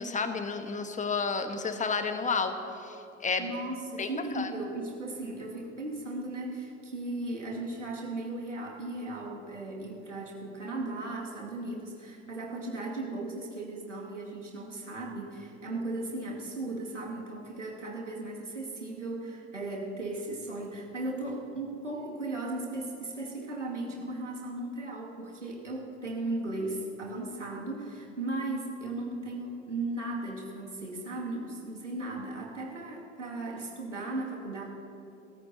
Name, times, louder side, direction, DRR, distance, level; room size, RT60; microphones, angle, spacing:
voice 1, 0.0-2.5 2.8-3.5 4.0-4.5, left 4 dB, 20° left, 7 dB, 1.3 m, -31 dB
voice 2, 3.4-34.6, right 2 dB, 90° right, -2 dB, 2.4 m, -36 dB
28.5 x 15.0 x 2.8 m, 2.6 s
figure-of-eight pair, 70°, 35 cm